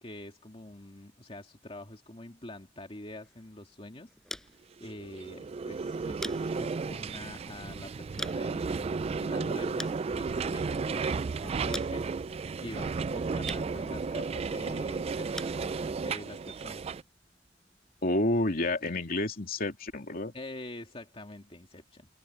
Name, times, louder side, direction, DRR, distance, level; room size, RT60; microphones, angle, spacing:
voice 1, 0.0-4.1 4.4-16.9 18.8-18.9 20.3-22.1, left 1 dB, 30° left, 2.4 m, -46 dB
sound 1, 3.1-18.1, left 1 dB, 5° left, 5.8 m, -48 dB
sound 2, 4.9-17.0, right 4 dB, 30° right, 0.3 m, -33 dB
voice 2, 18.0-20.3, left 1 dB, 50° left, 2.9 m, -29 dB
head